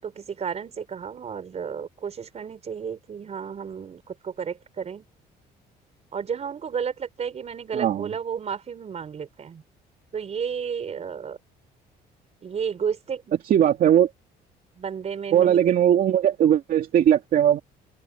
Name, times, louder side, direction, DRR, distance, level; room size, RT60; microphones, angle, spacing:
voice 1, 0.0-5.0 6.1-9.6 10.1-11.4 12.4-13.3 14.8-15.7, right 7 dB, 40° right, 4.7 m, -32 dB
voice 2, 7.7-8.1 13.5-14.1 15.3-17.6, right 10 dB, 55° right, 2.4 m, -19 dB
open air
cardioid pair, 110°, 17 cm